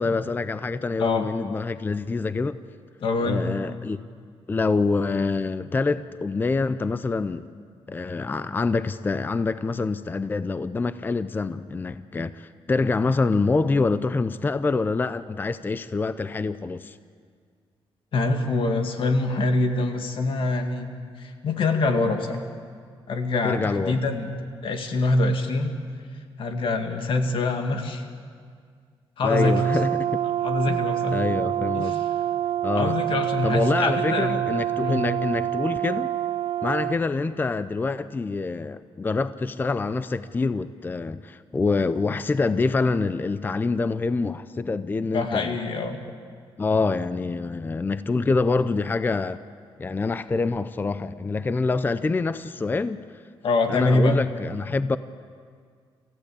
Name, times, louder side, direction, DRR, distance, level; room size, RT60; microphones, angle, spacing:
voice 1, 0.0-2.6 3.2-4.0 4.5-7.5 7.9-17.0 23.4-24.0 29.2-30.2 30.7-30.8 31.1-32.0 32.6-33.0 33.4-36.1 36.6-45.6 46.6-49.4 49.8-53.0 53.7-55.0, left 3 dB, 20° left, 0.5 m, -26 dB
voice 2, 3.0-3.5 18.1-20.9 21.2-22.5 23.1-24.3 24.6-25.7 26.4-28.0 29.2-29.6 30.4-31.2 31.8-32.1 32.7-34.4 34.8-35.1 45.1-46.0 53.4-54.2, left 2 dB, 60° left, 2.0 m, -24 dB
Brass instrument, 29.3-37.0, right 12 dB, 55° right, 0.6 m, -27 dB
27.5 x 15.0 x 8.5 m
cardioid pair, 145°, 10 cm